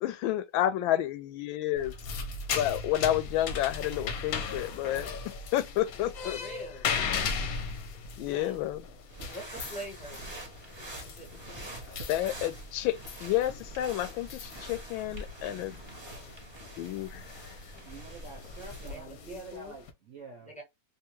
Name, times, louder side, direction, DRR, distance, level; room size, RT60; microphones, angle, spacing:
voice 1, 0.0-1.9 2.5-5.1 5.5-6.4 8.2-8.8 12.1-15.8 16.8-17.2, left 13 dB, 90° left, 1.3 m, -30 dB
sound 1, 1.8-19.9, left 5 dB, 65° left, 0.9 m, -38 dB
voice 2, 5.9-7.0 8.1-8.7 9.3-10.3 11.0-11.8 18.8-19.8 20.4-20.6, equal, 5° left, 0.9 m, -45 dB
sound 2, 9.1-19.0, right 1 dB, 20° right, 0.7 m, -45 dB
voice 3, 17.8-20.5, right 3 dB, 60° right, 0.8 m, -46 dB
3.5 x 2.5 x 3.0 m
omnidirectional pair, 2.1 m